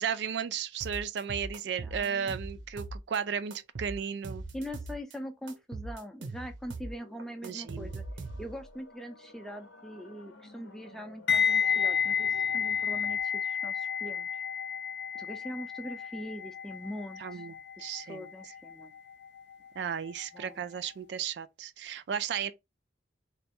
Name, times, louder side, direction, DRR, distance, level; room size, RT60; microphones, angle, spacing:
voice 1, 0.0-4.4 7.4-7.9 17.2-17.5 17.8-18.3 19.8-22.5, right 7 dB, 65° right, 0.3 m, -34 dB
sound 1, 0.8-3.2 3.5-5.2 5.5-8.7, right 2 dB, 80° right, 0.8 m, -40 dB
voice 2, 1.8-2.3 4.5-8.0 8.4-14.3 15.1-17.4 17.9-18.9 20.3-20.7, equal, ahead, 0.5 m, -42 dB
sound 2, 6.7-13.2, left 2 dB, 85° left, 0.8 m, -54 dB
sound 3, 11.3-20.2 20.5-20.8, left 7 dB, 65° left, 0.5 m, -31 dB
3.3 x 2.3 x 4.2 m
head